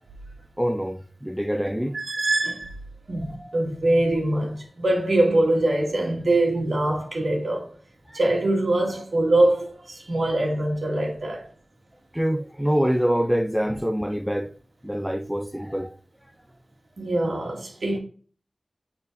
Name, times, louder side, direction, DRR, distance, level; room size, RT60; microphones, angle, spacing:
voice 1, 0.6-2.0 3.2-3.5 8.1-8.2 12.1-14.5 14.8-16.0, equal, 5° right, 0.4 m, -25 dB
voice 2, 1.9-2.8 3.1-7.7 8.1-11.5 17.0-18.0, right 1 dB, 75° right, 1.9 m, -23 dB
6.7 x 4.3 x 4.0 m
cardioid pair, 40°, 0 cm